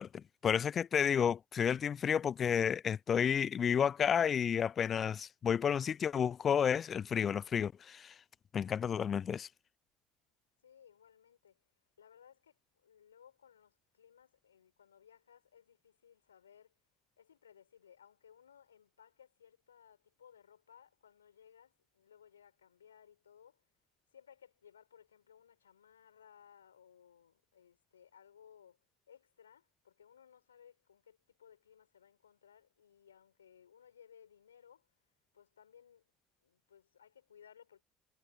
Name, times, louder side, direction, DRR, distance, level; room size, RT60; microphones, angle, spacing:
voice 1, 0.0-8.1 8.5-9.5, left 8 dB, 40° left, 0.3 m, -31 dB
voice 2, 10.6-11.6 12.0-16.8 17.2-23.6 24.1-28.8 29.1-34.9 35.3-36.0 36.4-37.8, left 8 dB, 85° left, 5.7 m, -62 dB
hypercardioid pair, 60°, 0 cm